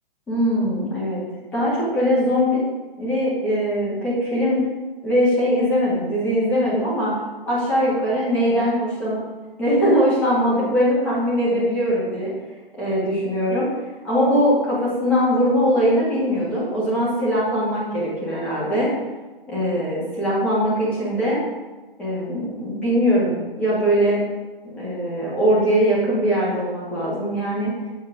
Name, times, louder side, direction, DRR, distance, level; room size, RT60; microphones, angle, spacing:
voice 1, 0.3-1.2 1.5-2.6 3.0-4.6 5.0-7.1 7.5-9.2 9.6-12.3 12.8-13.7 14.0-18.9 19.5-21.4 22.0-24.2 24.6-27.7, equal, 5° left, -9 dB, 1.7 m, -21 dB
7.6 x 4.6 x 6.0 m, 1.2 s
hypercardioid pair, 170°, 29 cm